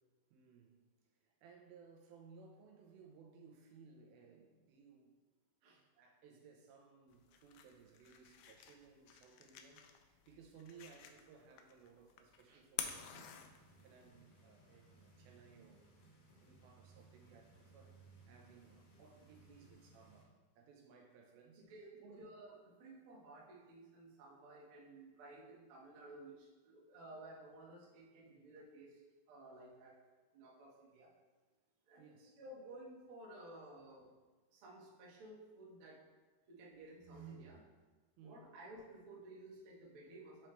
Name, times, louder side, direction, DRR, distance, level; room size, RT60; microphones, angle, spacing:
voice 1, 0.3-0.8 1.2-5.1 6.0-15.9 16.4-22.3 32.0-32.4 38.2-38.5, right 5 dB, 90° right, 2.6 m, -61 dB
sound 1, 7.1-14.1, left 9 dB, 90° left, 2.5 m, -50 dB
sound 2, 12.8-20.2, right 3 dB, 70° left, 2.9 m, -64 dB
voice 2, 21.7-22.5 22.8-29.0 29.3-29.9 30.3-31.1 31.9-32.1 32.4-34.1 34.5-36.0 36.5-37.6 38.2-40.5, right 2 dB, 60° right, 1.4 m, -55 dB
8.0 x 4.4 x 3.1 m
omnidirectional pair, 4.3 m